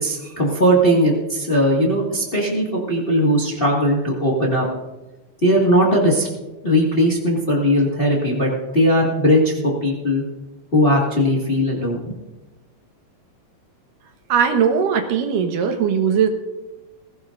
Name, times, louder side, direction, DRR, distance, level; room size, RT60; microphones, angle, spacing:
voice 1, 0.0-4.6 5.4-6.3 6.6-10.2 10.7-12.1, equal, 25° left, -3 dB, 1.4 m, -18 dB
voice 2, 14.3-16.3, right 7 dB, 80° right, 5 dB, 2.8 m, -19 dB
19.5 x 16.5 x 2.6 m, 1.1 s
omnidirectional pair, 3.8 m